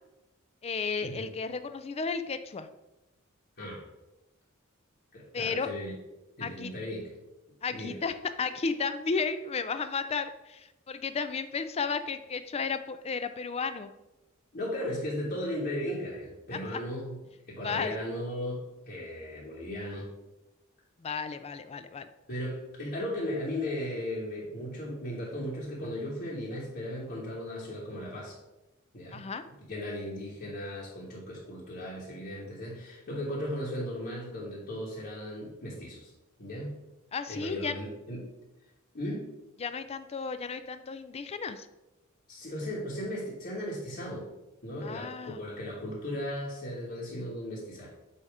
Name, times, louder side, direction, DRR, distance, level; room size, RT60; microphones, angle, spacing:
voice 1, 0.6-2.7 5.3-5.7 6.4-6.7 7.6-13.9 16.7-16.8 17.6-17.9 21.0-22.1 29.1-29.4 37.1-37.8 39.6-41.7 44.8-45.4, left 5 dB, 30° left, 11 dB, 0.4 m, -33 dB
voice 2, 5.1-5.9 6.4-7.1 7.7-8.0 14.5-17.2 17.5-20.1 22.3-28.4 28.9-29.2 29.7-36.1 36.4-36.8 37.3-38.3 38.9-39.3 42.3-44.3 44.6-47.9, left 1 dB, 50° left, -6 dB, 1.3 m, -36 dB
8.3 x 2.8 x 4.8 m, 1.0 s
head